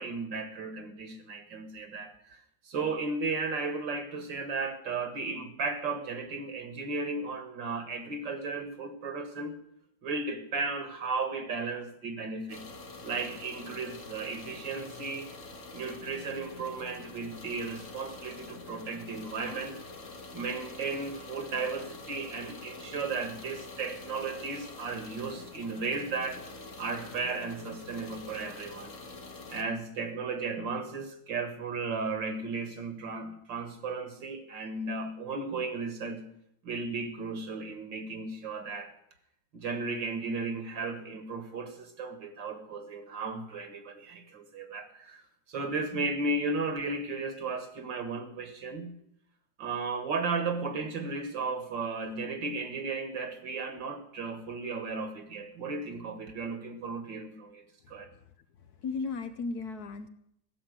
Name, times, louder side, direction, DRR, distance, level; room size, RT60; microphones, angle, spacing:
voice 1, 0.0-9.6 10.0-12.6 13.0-15.3 15.7-19.8 20.3-26.4 26.8-29.0 29.5-36.2 36.6-38.9 39.5-45.2 45.5-48.9 49.6-58.1, right 4 dB, 65° right, 9 dB, 2.3 m, -35 dB
sound 1, 12.5-29.6, left 3 dB, 40° left, 1.8 m, -46 dB
voice 2, 58.6-60.1, left 4 dB, 60° left, 9 dB, 1.2 m, -36 dB
15.5 x 7.4 x 9.6 m, 0.74 s
omnidirectional pair, 2.2 m